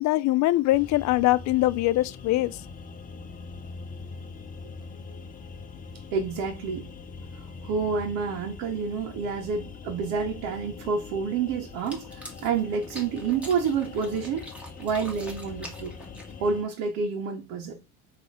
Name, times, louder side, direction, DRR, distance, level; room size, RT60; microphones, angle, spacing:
voice 1, 0.0-2.6, left 17 dB, 55° left, 0.5 m, -23 dB
sound 1, 0.7-16.6, left 4 dB, 25° left, 0.9 m, -43 dB
voice 2, 6.1-6.9 7.6-14.5 14.8-15.9 16.4-17.8, right 5 dB, 75° right, 1.7 m, -29 dB
sound 2, 11.7-16.6, equal, 5° right, 2.1 m, -45 dB
6.2 x 3.5 x 5.6 m
cardioid pair, 125°, 33 cm